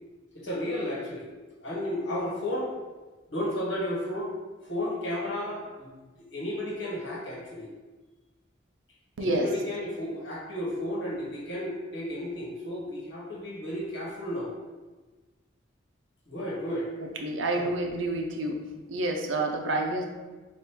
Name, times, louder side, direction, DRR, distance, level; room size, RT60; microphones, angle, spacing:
voice 1, 0.3-1.3 1.6-2.7 3.3-4.3 4.6-5.9 6.3-7.7 9.2-14.5 16.3-16.9 17.5-17.7, left 1 dB, 70° left, -4 dB, 1.2 m, -33 dB
voice 2, 17.0-18.6 18.9-20.0, right 2 dB, 80° right, 2 dB, 0.6 m, -29 dB
3.6 x 2.5 x 4.3 m, 1.2 s
head